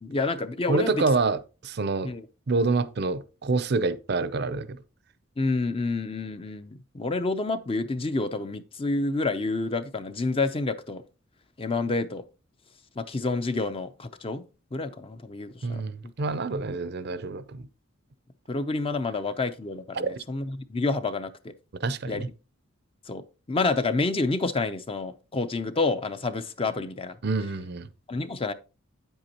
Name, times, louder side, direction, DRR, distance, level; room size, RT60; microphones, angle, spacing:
voice 1, 0.0-1.0 2.0-2.3 5.4-11.0 11.6-12.2 13.0-14.4 14.7-16.1 18.5-21.5 22.1-22.2 23.1-27.2 28.1-28.5, left 3 dB, 25° left, 0.5 m, -29 dB
voice 2, 0.7-2.1 2.5-4.8 15.6-17.7 20.0-20.1 21.8-22.3 27.2-27.9, right 3 dB, 50° right, 0.5 m, -27 dB
9.0 x 8.0 x 2.9 m
head